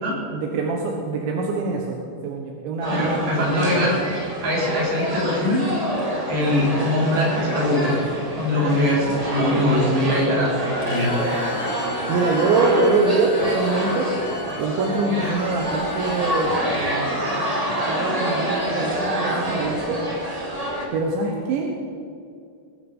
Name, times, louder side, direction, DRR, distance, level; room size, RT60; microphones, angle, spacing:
voice 1, 0.3-3.9 12.1-14.1 14.6-17.2 17.7-20.0 20.9-21.9, right 3 dB, 85° right, 0 dB, 3.6 m, -24 dB
sound 1, 2.8-20.8, equal, 30° right, 0.7 m, -27 dB
voice 2, 2.9-4.0 4.4-5.6 6.3-8.0 8.3-11.1, left 1 dB, 60° right, -5 dB, 6.3 m, -22 dB
Bowed string instrument, 10.8-16.5, left 3 dB, 85° left, 4.1 m, -38 dB
20.0 x 12.0 x 5.5 m, 2.3 s
omnidirectional pair, 5.1 m